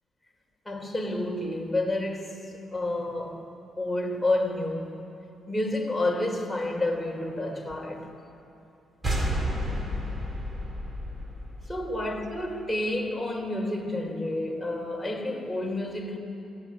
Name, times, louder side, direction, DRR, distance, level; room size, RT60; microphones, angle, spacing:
voice 1, 0.7-5.1 5.5-8.1 11.7-16.2, left 1 dB, 5° left, 4.3 m, -30 dB
sound 1, 9.0-12.5, equal, 20° right, 3.9 m, -31 dB
25.0 x 17.5 x 9.9 m
cardioid pair, 90°, 0 cm